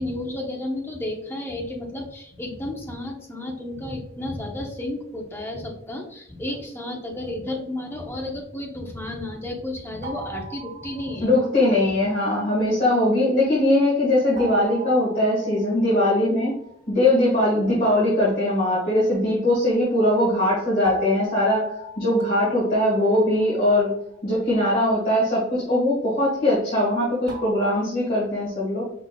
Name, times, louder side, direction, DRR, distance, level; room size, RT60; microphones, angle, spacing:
voice 1, 0.0-11.3, left 1 dB, 10° left, 1 dB, 0.9 m, -32 dB
sound 1, 10.0-11.5 14.4-16.8 20.9-24.0 27.3-27.7, right 3 dB, 55° right, 1.6 m, -38 dB
voice 2, 11.2-16.6 16.9-23.9 24.2-28.8, left 1 dB, 45° left, -8 dB, 1.6 m, -21 dB
5.2 x 4.1 x 2.3 m, 0.73 s
head